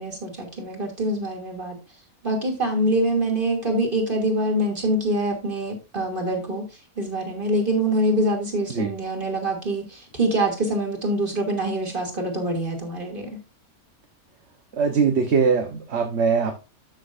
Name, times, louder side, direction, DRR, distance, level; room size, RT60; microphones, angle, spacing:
voice 1, 0.0-1.8 2.2-6.6 7.0-13.3, right 1 dB, 35° right, 1 dB, 2.9 m, -25 dB
voice 2, 14.7-16.5, right 5 dB, 50° right, 5 dB, 1.3 m, -21 dB
12.5 x 6.6 x 2.6 m, 0.28 s
omnidirectional pair, 1.5 m